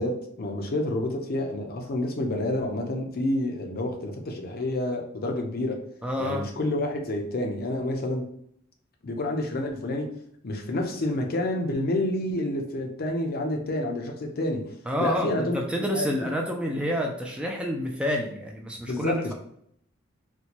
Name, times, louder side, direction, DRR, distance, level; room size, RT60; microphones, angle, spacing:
voice 1, 0.0-5.8 6.2-8.3 9.0-10.1 10.4-14.7 15.0-16.3 18.8-19.3, left 1 dB, 50° left, 3 dB, 0.5 m, -29 dB
voice 2, 6.0-6.5 14.9-19.3, equal, 5° right, 0 dB, 0.3 m, -28 dB
4.2 x 2.2 x 2.9 m, 0.68 s
head